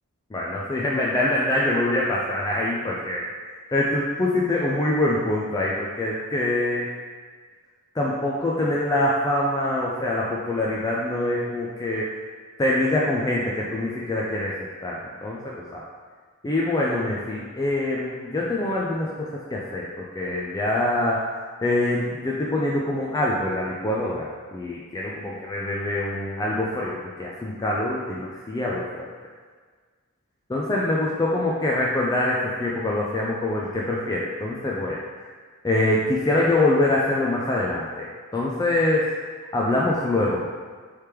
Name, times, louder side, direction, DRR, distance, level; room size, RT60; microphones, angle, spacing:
voice 1, 0.3-3.3 3.7-6.9 7.9-12.1 12.6-15.8 16.4-21.2 21.6-29.1 30.5-35.0 35.6-38.1 38.3-39.1 39.5-40.4, left 1 dB, 15° left, -4 dB, 0.3 m, -24 dB
3.4 x 3.2 x 4.4 m, 1.5 s
head